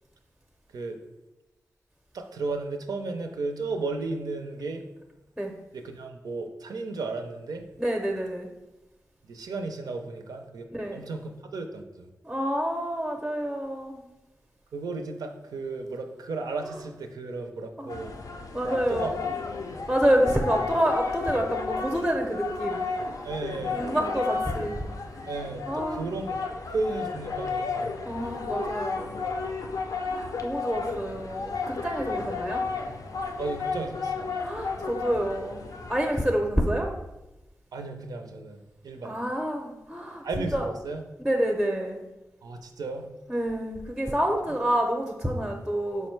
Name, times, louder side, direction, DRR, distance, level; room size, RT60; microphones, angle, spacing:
voice 1, 2.1-4.8 5.7-7.7 9.2-10.7 10.9-12.1 14.7-18.1 18.7-19.1 23.2-23.9 25.3-27.9 29.2-29.3 33.4-34.3 37.7-39.1 40.2-41.0 42.4-43.1, right 3 dB, 80° right, 5 dB, 0.4 m, -34 dB
voice 2, 7.8-8.5 10.7-11.0 12.2-14.0 17.8-17.9 18.5-19.2 19.9-22.8 23.7-24.8 25.1-25.2 25.7-26.1 28.1-29.2 30.1-32.6 34.4-36.9 39.0-40.7 41.2-42.0 43.3-46.1, equal, 5° right, 2 dB, 0.5 m, -28 dB
sound 1, 17.9-36.2, left 4 dB, 65° left, 0.4 m, -33 dB
4.9 x 2.2 x 4.4 m, 1.0 s
cardioid pair, 55°, 6 cm